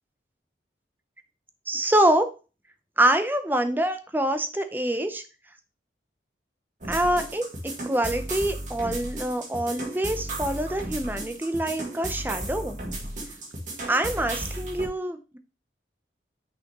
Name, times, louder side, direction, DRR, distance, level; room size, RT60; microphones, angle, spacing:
voice 1, 1.7-2.3 3.0-5.2 6.9-7.5 7.9-12.8 13.9-15.4, right 1 dB, 10° right, 9 dB, 0.6 m, -25 dB
sound 1, 6.8-14.9, right 1 dB, 40° right, 1.8 m, -34 dB
5.9 x 5.6 x 2.9 m, 0.32 s
head